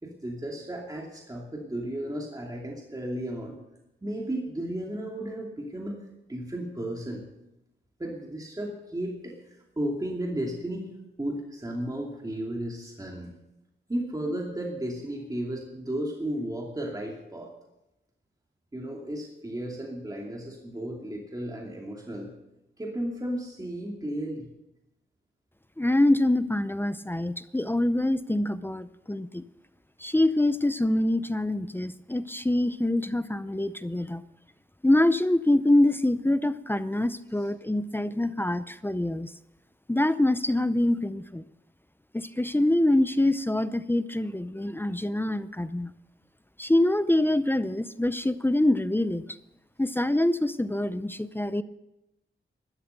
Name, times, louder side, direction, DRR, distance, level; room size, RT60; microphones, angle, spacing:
voice 1, 0.0-3.6 4.0-6.0 6.3-7.3 8.0-10.9 11.2-13.3 13.9-17.5 18.7-22.3 22.8-24.5, right 1 dB, 20° right, -1 dB, 2.5 m, -34 dB
voice 2, 25.8-29.4 30.0-34.2 34.8-39.3 39.9-41.4 42.1-45.9 46.6-49.2 49.8-51.6, left 1 dB, 10° left, 13 dB, 0.5 m, -25 dB
13.0 x 12.5 x 6.8 m, 0.91 s
wide cardioid pair, 100°, 20 cm